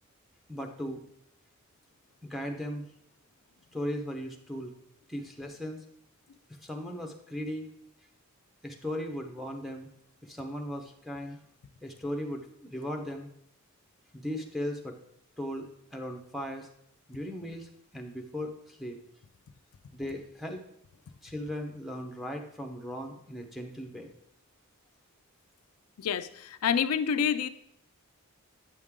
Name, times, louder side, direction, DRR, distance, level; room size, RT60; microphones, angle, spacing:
voice 1, 0.5-1.0 2.2-2.9 3.7-4.7 5.1-5.8 6.6-7.7 8.6-9.9 10.2-11.4 11.8-13.3 14.1-15.0 15.4-15.7 15.9-16.7 17.1-19.0 19.9-20.6 21.2-24.1, equal, ahead, 2 dB, 0.8 m, -37 dB
voice 2, 26.0-27.5, left 7 dB, 80° left, 11 dB, 0.4 m, -28 dB
8.9 x 6.3 x 3.6 m, 0.74 s
head